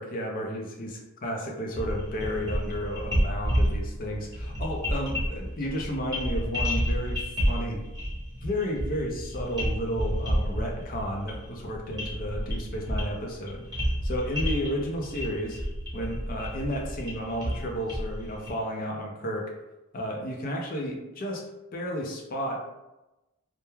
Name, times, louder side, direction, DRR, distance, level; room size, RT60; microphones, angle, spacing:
voice 1, 0.0-7.8 8.4-13.6 14.0-15.6 15.9-19.5 19.9-21.4 21.7-22.6, equal, 40° left, 1 dB, 0.4 m, -32 dB
sound 1, 1.7-18.5, equal, 20° right, 0.8 m, -30 dB
2.2 x 2.1 x 3.0 m, 0.99 s
head